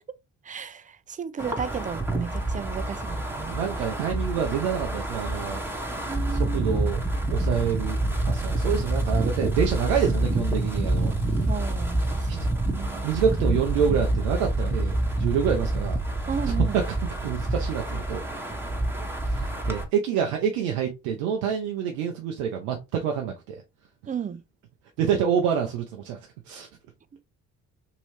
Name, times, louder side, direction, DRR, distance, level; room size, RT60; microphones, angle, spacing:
voice 1, 0.5-3.5 6.0-6.7 11.5-13.1 16.3-16.8 24.1-24.4, right 7 dB, 25° right, 0.4 m, -34 dB
Wind, 1.4-19.8, right 1 dB, 5° right, 0.9 m, -27 dB
voice 2, 3.4-5.6 6.3-7.0 7.3-8.0 8.3-11.1 12.3-12.4 12.7-16.0 16.4-16.8 17.2-18.2 19.3-23.6 25.0-26.2 26.5-26.7, right 8 dB, 85° right, 0.6 m, -27 dB
3.0 x 2.8 x 3.0 m
hypercardioid pair, 55°, 37 cm